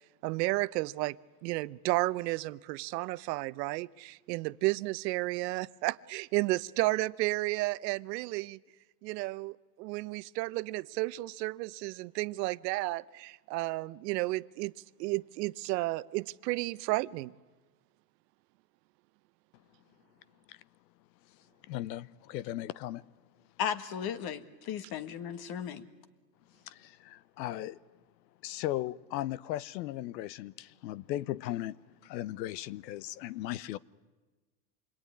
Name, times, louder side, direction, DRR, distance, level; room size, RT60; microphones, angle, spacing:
voice 1, 0.2-1.2 1.4-8.6 9.0-14.7 15.0-17.3, right 20 dB, 75° right, 0.8 m, -32 dB
voice 2, 21.7-23.0 26.7-27.8 28.4-31.8 32.0-33.8, left 14 dB, 80° left, 0.9 m, -37 dB
voice 3, 23.6-25.8, left 8 dB, 45° left, 1.8 m, -35 dB
27.0 x 22.0 x 9.7 m
supercardioid pair, 115°, 50 cm